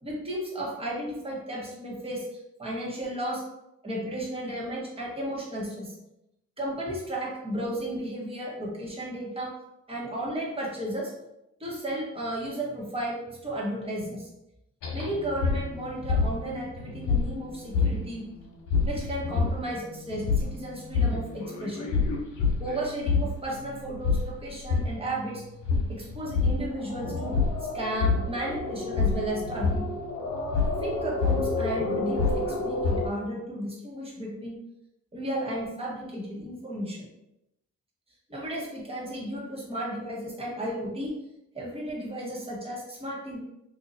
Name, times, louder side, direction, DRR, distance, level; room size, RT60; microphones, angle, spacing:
voice 1, 0.0-2.2 2.6-3.4 3.8-5.9 6.6-9.5 9.9-11.1 11.6-14.3 14.9-18.2 18.8-21.9 22.6-25.4 25.9-27.4 27.7-29.9 30.8-34.6 35.1-37.1 38.3-41.2 41.5-43.4, right 1 dB, 20° right, -4 dB, 1.4 m, -34 dB
sound 1, 14.8-33.1, left 4 dB, 80° left, 1.0 m, -28 dB
2.8 x 2.6 x 4.0 m, 0.86 s
cardioid pair, 90°, 30 cm